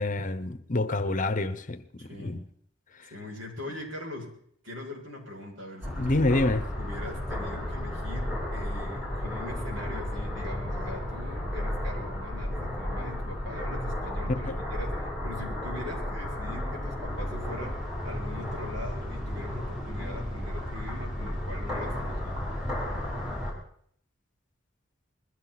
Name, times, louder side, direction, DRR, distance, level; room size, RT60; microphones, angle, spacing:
voice 1, 0.0-2.4 3.0-3.1 6.0-6.6 14.3-14.6, left 2 dB, 40° left, 1.0 m, -27 dB
voice 2, 2.0-2.4 3.1-4.3 4.6-6.3 6.8-17.7 18.0-22.5, left 1 dB, 70° right, 7.0 m, -41 dB
sound 1, 5.8-23.5, left 1 dB, 5° right, 6.6 m, -33 dB
21.5 x 15.5 x 4.2 m
head